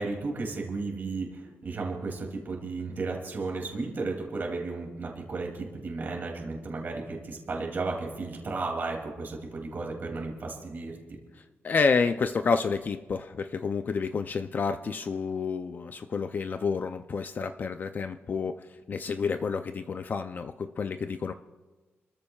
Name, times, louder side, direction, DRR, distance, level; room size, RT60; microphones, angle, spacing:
voice 1, 0.0-11.0, right 3 dB, 45° right, 0 dB, 2.6 m, -34 dB
voice 2, 11.6-21.3, left 5 dB, 40° left, 8 dB, 0.4 m, -29 dB
29.5 x 14.0 x 2.4 m, 1.2 s
wide cardioid pair, 175°, 5 cm